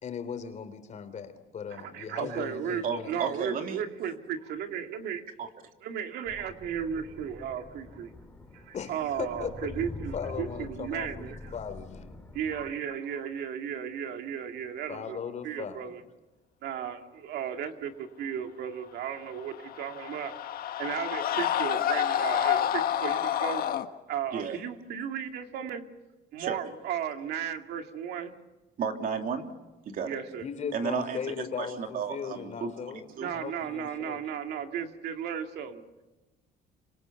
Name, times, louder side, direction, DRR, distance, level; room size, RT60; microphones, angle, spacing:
voice 1, 0.0-3.3 8.7-9.5 10.1-12.2 14.9-15.9 30.4-33.1 33.3-34.2, left 6 dB, 45° left, 9 dB, 3.5 m, -38 dB
voice 2, 1.7-5.2 5.8-8.1 8.5-11.5 12.3-15.2 15.4-16.0 16.6-20.3 20.8-23.6 24.1-25.8 26.3-28.3 30.0-30.5 33.2-35.8, right 8 dB, 75° right, 5 dB, 2.2 m, -35 dB
voice 3, 2.8-3.8 5.4-5.5 24.3-24.6 26.4-26.6 28.8-29.5 29.9-30.2 30.7-33.3, right 6 dB, 55° right, 4 dB, 2.9 m, -33 dB
sound 1, 6.2-12.7, left 3 dB, 10° left, 3.8 m, -45 dB
Screaming, 19.4-23.9, left 10 dB, 60° left, 1.5 m, -28 dB
26.5 x 26.0 x 7.0 m, 1.2 s
cardioid pair, 110°, 17 cm